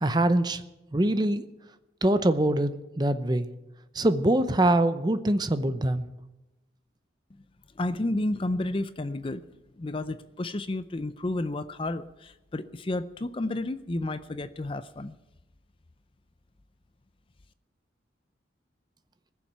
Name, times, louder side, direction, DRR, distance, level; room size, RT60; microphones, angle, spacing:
voice 1, 0.0-0.6 0.9-1.4 2.0-3.5 3.9-6.0, right 1 dB, 20° right, 11 dB, 0.7 m, -24 dB
voice 2, 7.8-9.4 9.8-15.1, left 2 dB, 30° left, 13 dB, 0.5 m, -31 dB
20.5 x 7.2 x 9.0 m, 0.99 s
head